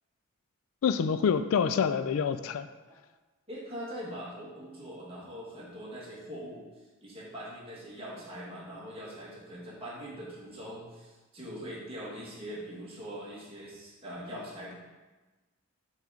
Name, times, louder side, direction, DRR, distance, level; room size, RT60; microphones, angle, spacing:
voice 1, 0.8-2.7, left 6 dB, 80° left, 11 dB, 0.4 m, -26 dB
voice 2, 3.5-6.7 7.0-14.7, equal, 25° right, -6 dB, 1.9 m, -42 dB
6.5 x 3.7 x 4.9 m, 1.2 s
head